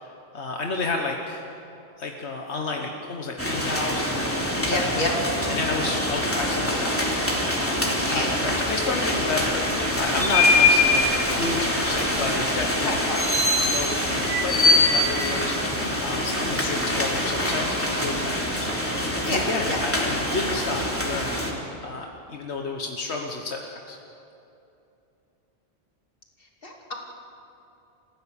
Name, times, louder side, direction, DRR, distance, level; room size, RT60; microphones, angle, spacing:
voice 1, 0.0-1.5 2.0-4.1 4.7-5.1 5.5-7.0 7.4-7.7 8.1-13.0 13.4-18.7 19.3-21.5 21.8-24.0, left 3 dB, 85° left, 2 dB, 1.5 m, -31 dB
sound 1, 3.4-21.5, left 1 dB, 10° left, 3.0 m, -24 dB
voice 2, 4.7-5.1 7.8-8.3 12.8-13.2 19.3-19.8 26.6-26.9, left 1 dB, 55° left, 0 dB, 2.9 m, -29 dB
28.5 x 15.5 x 7.1 m, 2.8 s
omnidirectional pair, 1.1 m